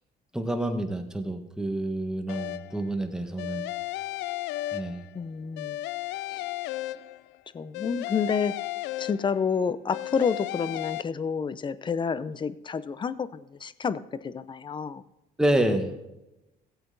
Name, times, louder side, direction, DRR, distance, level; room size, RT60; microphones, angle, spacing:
voice 1, 0.3-3.7 4.7-5.0 15.4-16.0, right 1 dB, 5° right, 5 dB, 1.5 m, -28 dB
sound 1, 2.3-2.9 3.4-5.2 5.6-7.4 7.7-9.5 9.9-11.0, left 15 dB, 85° left, 0.4 m, -34 dB
voice 2, 5.1-5.8 6.3-6.4 7.5-8.6 9.0-15.0, left 6 dB, 30° left, 15 dB, 0.6 m, -29 dB
16.5 x 8.2 x 4.0 m, 0.96 s
cardioid pair, 110°, 17 cm